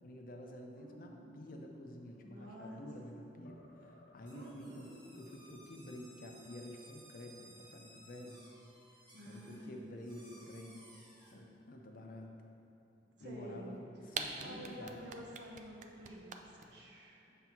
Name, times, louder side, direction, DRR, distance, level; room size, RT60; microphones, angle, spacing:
voice 1, 0.0-8.4 9.3-10.8 11.3-12.3 13.2-15.1 17.3-17.4, left 1 dB, 50° left, 2 dB, 0.6 m, -50 dB
voice 2, 0.8-1.4 2.2-2.9 4.3-5.0 9.1-9.8 13.2-13.7 14.4-17.3, right 1 dB, 80° right, -2 dB, 1.1 m, -50 dB
sound 1, 1.7-3.1 3.4-4.9, left 2 dB, 80° left, 1.2 m, -62 dB
sound 2, 4.2-11.3, right 1 dB, 25° right, 1.2 m, -60 dB
sound 3, 13.7-13.8 14.1-16.6, right 6 dB, 45° right, 0.4 m, -41 dB
7.0 x 3.3 x 5.9 m, 2.8 s
head